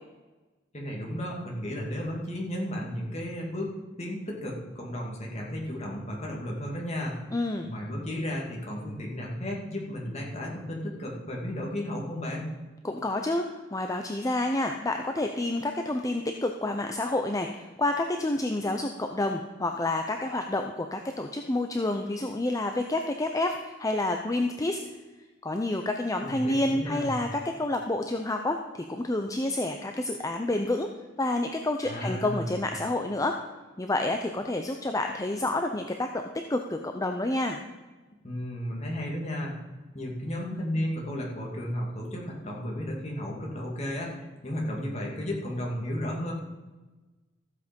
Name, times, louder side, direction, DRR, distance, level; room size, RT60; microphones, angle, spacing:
voice 1, 0.7-3.7 4.0-7.1 7.6-12.5 26.2-27.1 31.8-32.6 38.2-39.5 39.9-46.3, equal, 35° left, -2 dB, 2.5 m, -33 dB
voice 2, 7.3-7.7 12.8-13.4 13.7-24.8 25.4-30.9 31.2-33.4 33.8-36.2 36.5-37.6, left 2 dB, 20° left, 4 dB, 0.6 m, -29 dB
14.0 x 8.0 x 5.3 m, 1.2 s
head